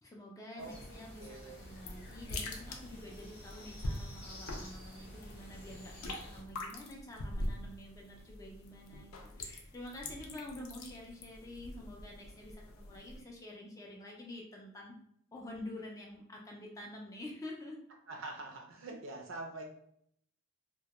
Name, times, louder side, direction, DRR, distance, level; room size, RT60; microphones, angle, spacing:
voice 1, 0.0-14.9 15.3-17.8, left 1 dB, 15° left, -1 dB, 0.3 m, -48 dB
sound 1, 0.6-6.4, left 1 dB, 45° left, 0.7 m, -50 dB
voice 2, 1.2-1.7 18.1-19.6, right 2 dB, 60° right, 2 dB, 0.5 m, -45 dB
sound 2, 1.6-13.2, left 1 dB, 90° left, 0.4 m, -44 dB
2.2 x 2.1 x 2.8 m, 0.69 s
head